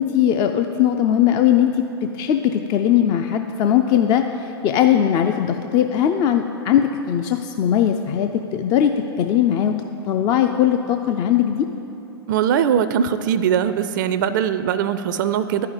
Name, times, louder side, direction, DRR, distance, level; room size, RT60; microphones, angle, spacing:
voice 1, 0.0-9.7 10.1-11.7, left 10 dB, 30° left, 6 dB, 0.4 m, -19 dB
voice 2, 12.3-15.7, right 8 dB, 50° right, 12 dB, 0.4 m, -21 dB
11.0 x 5.7 x 8.8 m, 2.9 s
figure-of-eight pair, 105°, 14 cm